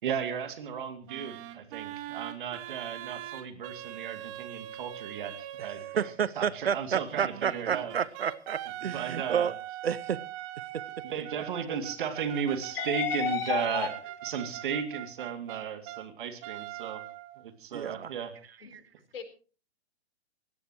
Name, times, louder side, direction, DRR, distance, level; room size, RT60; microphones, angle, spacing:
voice 1, 0.0-7.9 8.8-9.5 11.0-13.9 14.2-17.0 17.4-18.3, right 7 dB, 50° right, 2.6 m, -35 dB
sound 1, 1.1-6.2 7.1-16.1 16.4-17.5, right 14 dB, 30° right, 1.1 m, -42 dB
voice 2, 6.0-9.5 9.8-10.2 10.7-10.8 17.7-18.1, right 8 dB, 65° right, 0.8 m, -30 dB
voice 3, 12.7-13.9 18.6-18.8 19.1-19.2, left 8 dB, 55° left, 4.1 m, -31 dB
22.0 x 17.0 x 3.1 m
figure-of-eight pair, 125°, 33 cm